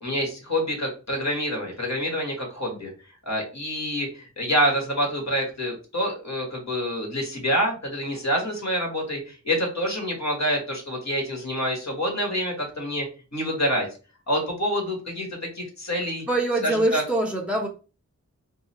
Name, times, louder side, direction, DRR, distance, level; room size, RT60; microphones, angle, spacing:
voice 1, 0.0-2.9 3.2-13.0 13.3-13.9 14.3-15.3 15.5-16.2 16.6-17.0, equal, 60° left, 0 dB, 1.6 m, -27 dB
voice 2, 16.3-17.7, right 1 dB, 5° right, 0 dB, 0.7 m, -24 dB
3.7 x 2.1 x 4.2 m, 0.34 s
wide cardioid pair, 40°, 32 cm